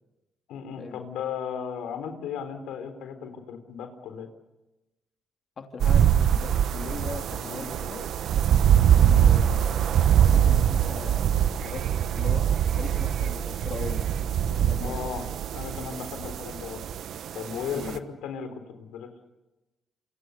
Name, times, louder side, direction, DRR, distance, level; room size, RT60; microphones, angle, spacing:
voice 1, 0.5-4.3 7.4-7.7 9.1-9.3 14.8-15.3 15.5-16.8 17.3-19.1, left 7 dB, 85° left, 8 dB, 4.1 m, -36 dB
voice 2, 5.6-8.0 9.0-11.3 11.6-11.8 12.1-14.0 14.5-15.1 17.7-18.0, left 5 dB, 45° left, 4 dB, 2.9 m, -39 dB
sound 1, 5.8-18.0, right 9 dB, 70° right, 1.2 m, -23 dB
28.0 x 25.5 x 6.7 m, 1.0 s
cardioid pair, 90°, 0 cm